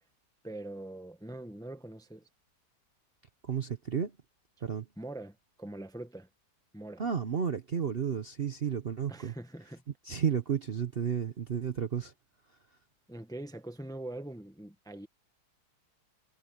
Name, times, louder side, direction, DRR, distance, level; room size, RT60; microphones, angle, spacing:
voice 1, 0.4-2.3 5.0-6.3 6.7-7.0 9.1-9.8 13.1-15.1, right 1 dB, 5° left, 0.9 m, -43 dB
voice 2, 3.4-4.2 4.6-4.9 7.0-9.3 10.0-12.1, right 7 dB, 45° right, 0.9 m, -32 dB
omnidirectional pair, 1.8 m